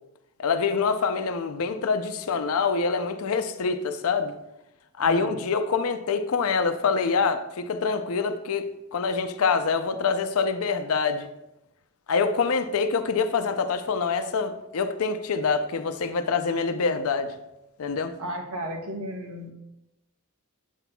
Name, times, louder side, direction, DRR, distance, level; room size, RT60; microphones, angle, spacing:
voice 1, 0.4-4.3 5.0-11.3 12.1-17.3 17.8-18.1, left 5 dB, 70° left, 9 dB, 0.5 m, -25 dB
voice 2, 5.0-5.4 18.2-19.5, equal, 75° right, 2 dB, 1.0 m, -34 dB
8.0 x 5.9 x 2.2 m, 0.91 s
head